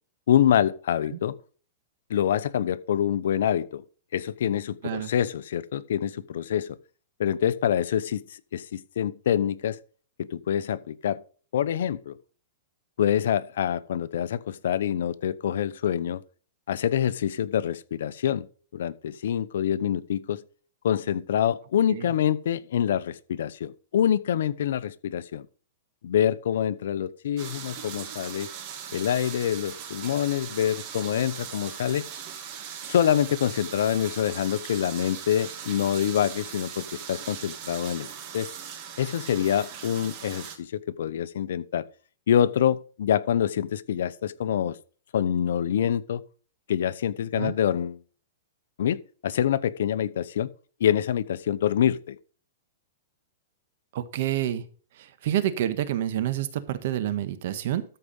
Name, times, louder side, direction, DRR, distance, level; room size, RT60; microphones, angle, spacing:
voice 1, 0.3-1.4 2.1-3.8 4.1-6.8 7.2-9.8 10.2-11.2 11.5-12.2 13.0-16.2 16.7-18.5 18.7-20.4 20.8-25.5 26.0-28.5 28.9-32.1 32.9-38.5 39.0-41.9 42.3-44.8 45.1-46.2 46.7-48.0 48.8-50.5 50.8-52.2, left 9 dB, 75° left, 0.8 m, -26 dB
voice 2, 4.8-5.1 21.9-22.1 47.3-47.5 53.9-54.6 55.0-57.8, right 11 dB, 60° right, 1.4 m, -28 dB
sound 1, 27.4-40.6, right 8 dB, 40° right, 2.4 m, -39 dB
13.5 x 4.9 x 5.4 m
hypercardioid pair, 145°, 0 cm